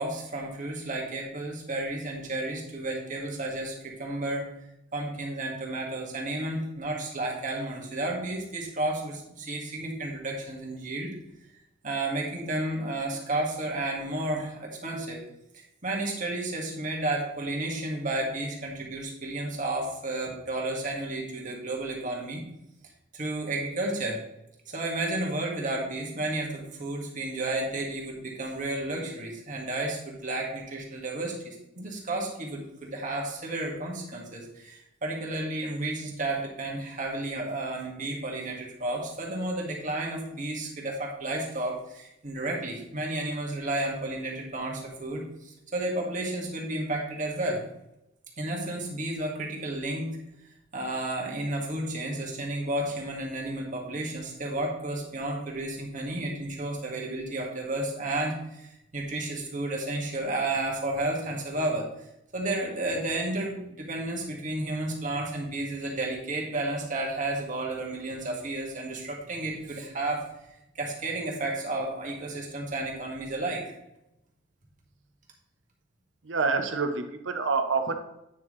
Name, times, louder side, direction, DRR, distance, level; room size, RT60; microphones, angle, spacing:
voice 1, 0.0-4.5 4.9-11.1 11.8-15.2 15.5-22.4 23.1-24.2 24.7-47.6 48.4-50.1 50.7-61.9 62.3-70.2 70.8-73.7, right 2 dB, 45° right, -1 dB, 1.9 m, -32 dB
voice 2, 76.2-78.0, right 4 dB, 85° right, 7 dB, 0.9 m, -27 dB
9.2 x 6.1 x 3.2 m, 0.85 s
head